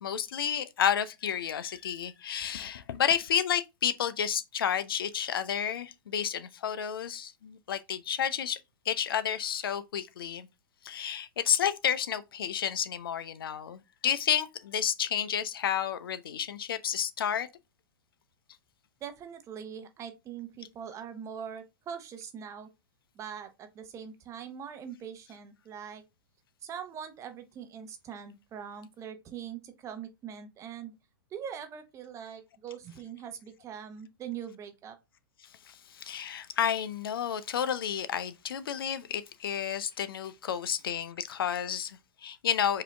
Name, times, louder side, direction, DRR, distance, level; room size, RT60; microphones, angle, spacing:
voice 1, 0.0-8.6 8.9-10.5 10.8-17.5 35.7-42.8, left 9 dB, 75° left, 0.6 m, -31 dB
voice 2, 19.0-22.7 23.1-26.0 26.6-30.9 31.3-35.0, right 8 dB, 25° right, 0.8 m, -42 dB
4.8 x 2.9 x 3.3 m
hypercardioid pair, 120°, 12 cm